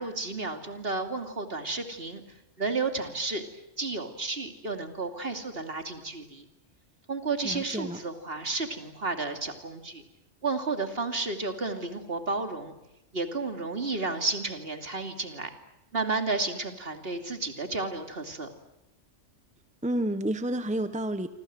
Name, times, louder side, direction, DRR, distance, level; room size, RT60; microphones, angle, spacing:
voice 1, 0.0-2.2 2.6-3.4 3.8-6.4 7.1-10.0 10.4-12.7 13.1-15.5 15.9-18.5, right 3 dB, 55° right, 6 dB, 3.0 m, -32 dB
voice 2, 7.4-8.0 19.8-21.3, right 1 dB, 5° right, 11 dB, 1.1 m, -30 dB
28.0 x 26.0 x 7.8 m, 0.91 s
omnidirectional pair, 1.2 m